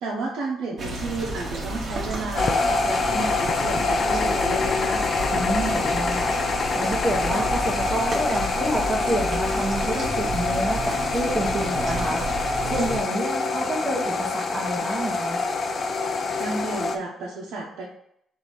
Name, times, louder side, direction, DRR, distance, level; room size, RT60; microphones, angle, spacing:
voice 1, 0.0-5.0 16.4-17.8, right 3 dB, 80° right, -5 dB, 0.8 m, -32 dB
sound 1, 0.8-13.0, right 1 dB, 45° right, 1.1 m, -31 dB
sound 2, 2.3-17.0, left 4 dB, 50° left, 0.5 m, -25 dB
voice 2, 5.3-15.4, right 1 dB, 20° right, -5 dB, 1.0 m, -28 dB
3.9 x 2.8 x 4.8 m, 0.73 s
cardioid pair, 90°, 0 cm